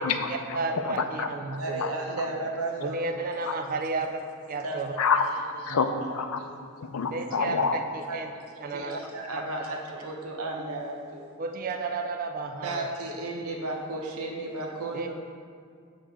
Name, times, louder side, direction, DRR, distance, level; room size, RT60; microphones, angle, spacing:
voice 1, 0.0-0.6 0.8-1.9 2.2-2.3 3.4-3.5 5.0-5.2 5.6-6.4 6.8-7.8, left 5 dB, 80° left, 8 dB, 0.5 m, -28 dB
voice 2, 0.5-1.8 2.8-4.2 4.5-4.9 7.1-8.3 8.6-9.0 11.4-12.9 14.9-15.1, right 3 dB, 40° right, 6 dB, 0.4 m, -32 dB
voice 3, 1.6-3.2 4.6-4.8 5.7-5.8 6.4-6.5 8.1-8.2 8.5-11.3 12.6-15.1, right 2 dB, 85° right, 1 dB, 0.9 m, -34 dB
8.6 x 3.2 x 4.8 m, 2.2 s
head